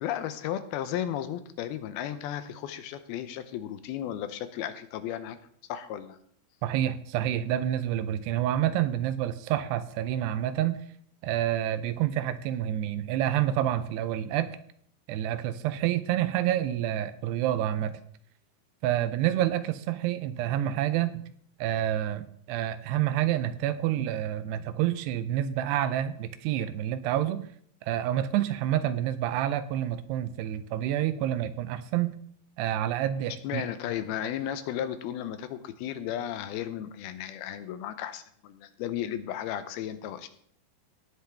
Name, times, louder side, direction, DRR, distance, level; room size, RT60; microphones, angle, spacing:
voice 1, 0.0-5.4 5.7-6.2 33.4-40.3, left 10 dB, 80° left, 10 dB, 2.5 m, -34 dB
voice 2, 6.6-10.8 11.2-14.6 15.1-18.0 18.8-21.2 21.6-27.4 27.9-32.1 32.6-33.6, right 12 dB, 85° right, 12 dB, 2.8 m, -28 dB
17.5 x 8.0 x 3.5 m, 0.65 s
omnidirectional pair, 4.7 m